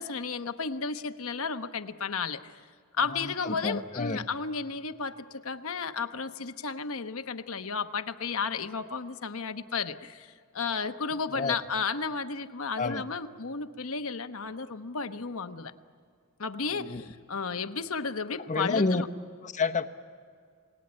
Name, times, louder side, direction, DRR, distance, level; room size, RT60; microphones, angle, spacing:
voice 1, 0.0-2.6 2.9-15.7 16.4-19.1, left 5 dB, 70° left, 9 dB, 1.0 m, -33 dB
voice 2, 3.2-4.2 11.3-11.6 12.8-13.0 16.7-17.0 18.5-19.0 19.4-19.9, left 3 dB, 35° left, 8 dB, 1.0 m, -29 dB
27.0 x 19.5 x 9.8 m, 2.1 s
head